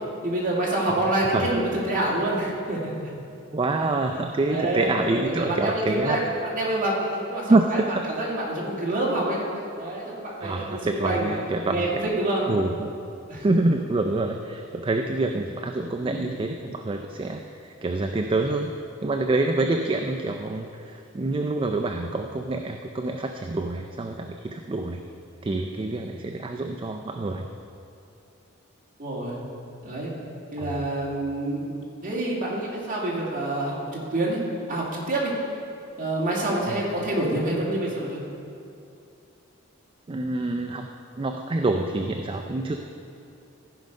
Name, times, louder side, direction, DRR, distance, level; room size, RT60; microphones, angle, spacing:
voice 1, 0.2-3.1 4.5-4.9 5.2-7.8 8.1-9.4 9.8-11.3 11.6-12.4 13.3-13.5 16.0-16.3 29.0-29.4 29.8-30.1 30.5-31.7 32.0-34.4 34.7-35.3 36.0-38.2, right 1 dB, 40° right, -5 dB, 2.4 m, -27 dB
voice 2, 3.5-6.2 7.5-8.1 10.4-11.9 12.5-12.9 13.4-18.7 19.0-25.0 25.4-27.5 30.6-30.8 36.7-36.8 40.1-40.9 41.2-42.8, right 2 dB, 25° right, 4 dB, 0.4 m, -26 dB
15.0 x 5.4 x 5.2 m, 2.6 s
head